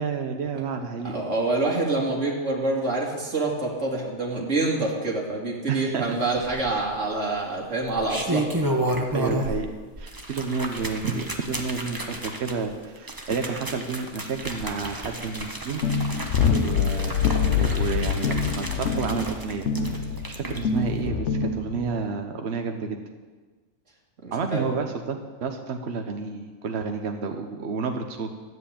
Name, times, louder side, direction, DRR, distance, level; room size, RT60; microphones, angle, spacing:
voice 1, 0.0-1.2 5.7-6.2 6.7-6.8 9.1-9.7 10.0-15.8 16.5-17.2 17.6-19.7 20.4-23.0 24.3-28.3, right 5 dB, 65° right, 5 dB, 1.2 m, -30 dB
voice 2, 1.0-8.5 20.4-20.7 24.2-24.7, right 2 dB, 80° right, -3 dB, 2.6 m, -27 dB
sound 1, 6.4-7.0 7.8-9.7 10.0-20.6 21.0-21.1, right 1 dB, 20° right, 1.2 m, -32 dB
sound 2, 15.8-22.0, left 6 dB, 70° left, 1.1 m, -25 dB
12.5 x 8.0 x 8.7 m, 1.4 s
omnidirectional pair, 1.2 m